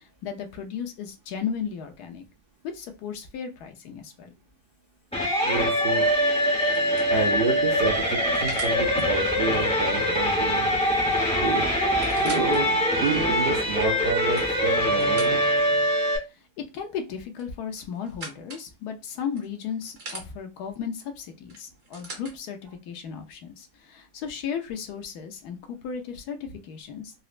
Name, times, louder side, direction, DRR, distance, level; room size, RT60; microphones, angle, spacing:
voice 1, 0.0-2.3 2.6-4.3 16.6-27.1, left 7 dB, 80° left, 4 dB, 1.2 m, -35 dB
sound 1, 5.1-16.2, equal, 5° left, 0.6 m, -23 dB
voice 2, 5.4-6.1 7.1-10.8 11.4-11.7 12.1-15.4, right 4 dB, 85° right, 1 dB, 0.5 m, -29 dB
sound 2, 6.7-8.8 10.8-10.9 11.2-11.3 11.8-12.6 13.2-13.3 14.1-15.7 17.3-18.7 19.4-20.3 21.5-22.3 23.3-23.4, right 2 dB, 45° right, 1.2 m, -42 dB
4.0 x 2.1 x 2.4 m, 0.26 s
omnidirectional pair, 1.7 m